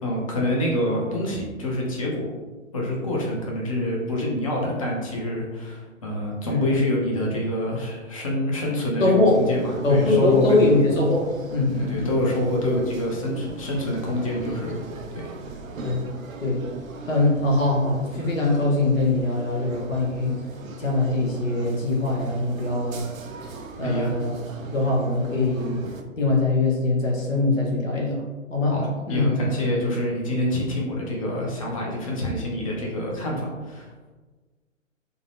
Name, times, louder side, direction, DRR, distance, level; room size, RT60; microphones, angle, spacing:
voice 1, 0.0-2.3 2.7-10.7 11.8-14.8 23.8-24.1 28.7-33.9, left 1 dB, 25° left, -2 dB, 0.5 m, -26 dB
voice 2, 6.4-6.8 9.0-9.4 9.8-12.3 15.8-16.0 16.4-16.6 17.1-20.3 20.8-23.0 23.8-24.3 24.7-25.8 26.2-28.2 28.5-28.8 29.1-29.3, left 2 dB, 75° left, -2 dB, 0.9 m, -22 dB
sound 1, 9.2-26.0, right 3 dB, 80° right, 0.5 m, -39 dB
3.6 x 2.0 x 2.5 m, 1.3 s
figure-of-eight pair, 125°, 40 cm